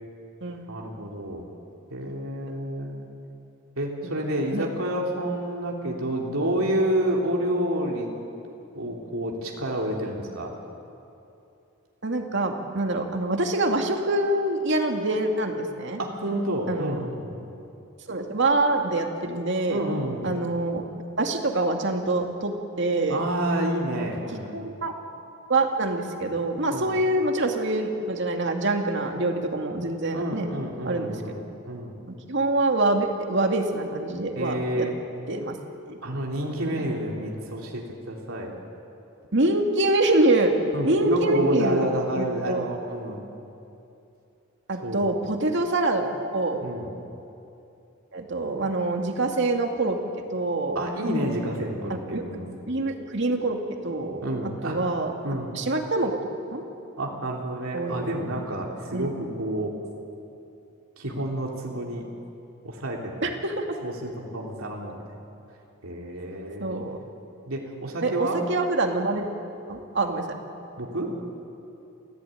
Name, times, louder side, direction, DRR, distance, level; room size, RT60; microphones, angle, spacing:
voice 1, 0.7-1.4 1.9-3.1 3.8-8.1 8.7-10.5 16.0-17.5 19.7-20.3 23.1-24.7 26.7-26.9 30.1-31.9 34.3-35.0 36.0-38.6 40.7-43.2 44.8-45.1 46.6-46.9 50.7-52.5 54.2-54.8 55.2-55.5 57.0-59.7 61.0-62.1 62.6-63.3 63.8-65.0 65.8-66.8 67.5-68.4 70.8-71.1, right 1 dB, 85° right, -1 dB, 3.3 m, -29 dB
voice 2, 12.0-16.0 16.7-17.0 18.1-19.8 20.2-20.8 21.2-23.2 24.0-24.1 24.5-24.9 25.5-30.5 30.8-31.2 32.1-34.9 35.3-35.6 35.9-36.0 39.3-40.5 40.8-41.9 42.1-42.7 44.7-46.6 48.1-50.0 50.3-50.9 51.9-52.2 52.7-53.6 53.8-54.2 54.6-55.1 55.5-56.2 56.5-56.6 57.7-58.1 58.9-59.1 63.2-63.7 66.6-67.0 68.0-69.2 69.7-70.3, right 2 dB, 60° right, 3 dB, 2.4 m, -25 dB
28.0 x 16.0 x 9.2 m, 2.8 s
head